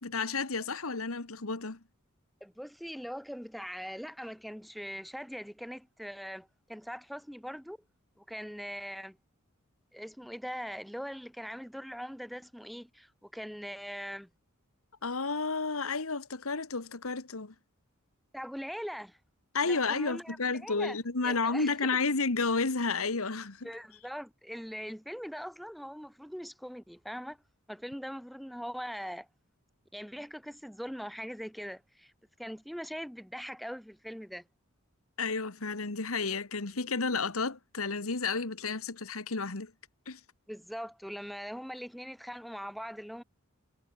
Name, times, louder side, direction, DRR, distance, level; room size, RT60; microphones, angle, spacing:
voice 1, 0.0-1.8 15.0-17.5 19.5-23.7 35.2-39.7 40.1-40.2, left 4 dB, 80° left, 1.7 m, -31 dB
voice 2, 2.4-7.8 8.2-9.2 9.9-14.3 18.3-19.2 19.6-21.0 21.2-21.7 23.6-27.4 27.7-29.3 29.9-32.1 32.4-34.4 40.5-43.2, equal, ahead, 4.2 m, -41 dB
head